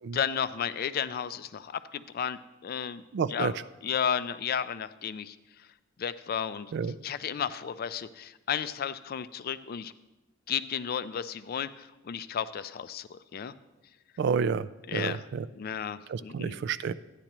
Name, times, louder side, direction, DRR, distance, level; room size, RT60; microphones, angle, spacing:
voice 1, 0.1-3.0 3.3-3.6 3.8-5.4 6.0-6.7 7.0-9.9 10.5-13.5 14.9-15.2 15.6-16.6, left 8 dB, 50° left, 13 dB, 0.4 m, -33 dB
voice 2, 3.1-3.5 6.7-7.0 14.2-15.5 16.1-16.9, right 6 dB, 60° right, 16 dB, 0.3 m, -30 dB
13.5 x 9.8 x 3.0 m, 1.0 s
head